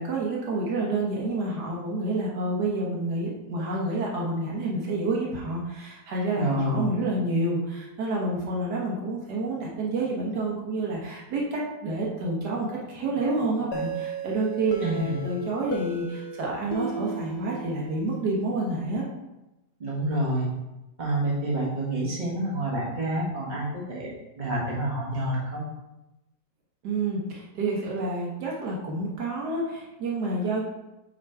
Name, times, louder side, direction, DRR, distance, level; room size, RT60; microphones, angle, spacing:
voice 1, 0.0-19.0 26.8-30.6, right 2 dB, 75° right, -3 dB, 1.7 m, -29 dB
voice 2, 6.4-6.8 14.8-15.2 19.8-20.5 21.0-25.6, right 1 dB, 25° right, -5 dB, 1.6 m, -28 dB
sound 1, 13.7-18.4, right 1 dB, 75° left, 1.3 m, -35 dB
6.1 x 3.7 x 4.5 m, 0.98 s
omnidirectional pair, 1.8 m